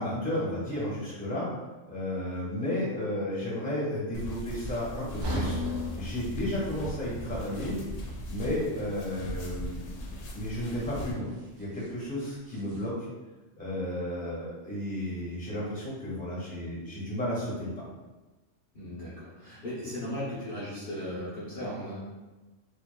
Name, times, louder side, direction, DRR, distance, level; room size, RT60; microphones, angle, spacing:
voice 1, 0.0-1.5 1.9-5.6 6.0-7.8 8.3-10.0 10.3-11.3 11.5-12.9 13.6-17.8, left 1 dB, 5° left, -7 dB, 1.4 m, -33 dB
sound 1, 4.1-11.1, left 1 dB, 70° left, 0.3 m, -40 dB
sound 2, 5.2-9.3 9.6-9.8 10.4-10.5, left 1 dB, 60° right, 1.1 m, -37 dB
sound 3, 7.1-12.9, right 1 dB, 45° right, 0.4 m, -50 dB
voice 2, 18.7-22.0, left 1 dB, 45° left, -11 dB, 1.1 m, -37 dB
5.0 x 2.8 x 2.2 m, 1.2 s
omnidirectional pair, 1.3 m